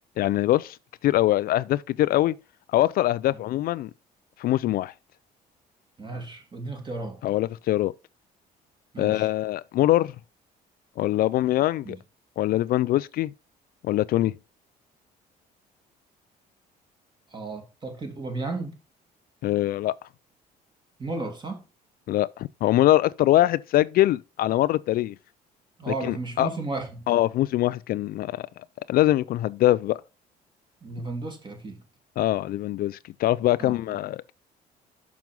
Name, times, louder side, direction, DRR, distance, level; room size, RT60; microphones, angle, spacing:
voice 1, 0.2-0.8 1.0-2.3 2.7-3.9 4.4-4.9 7.2-7.9 9.0-10.1 11.0-12.0 12.4-13.3 13.8-14.3 19.4-20.0 22.1-25.1 25.9-26.5 27.1-28.5 28.9-30.0 32.2-34.3, left 15 dB, 60° left, 0.4 m, -23 dB
voice 2, 6.0-7.2 8.9-9.3 11.8-12.0 17.3-18.8 21.0-21.6 25.8-27.1 30.8-31.8 33.6-34.0, right 3 dB, 25° right, 2.6 m, -34 dB
6.1 x 6.0 x 5.2 m
cardioid pair, 110°, 17 cm